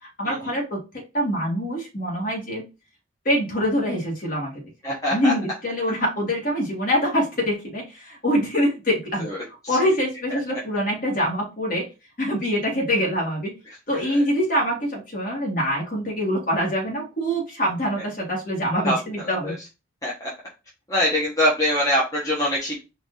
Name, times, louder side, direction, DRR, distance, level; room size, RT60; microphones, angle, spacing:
voice 1, 0.0-2.6 3.2-4.5 5.1-11.9 12.2-13.5 13.9-19.5, equal, 45° left, -3 dB, 2.2 m, -25 dB
voice 2, 4.8-5.3 9.2-9.4 9.6-9.8 14.1-14.2 18.8-19.0 19.3-19.5 20.0-20.3 20.9-22.8, equal, 15° left, -6 dB, 1.2 m, -23 dB
4.5 x 2.7 x 3.9 m, 0.28 s
head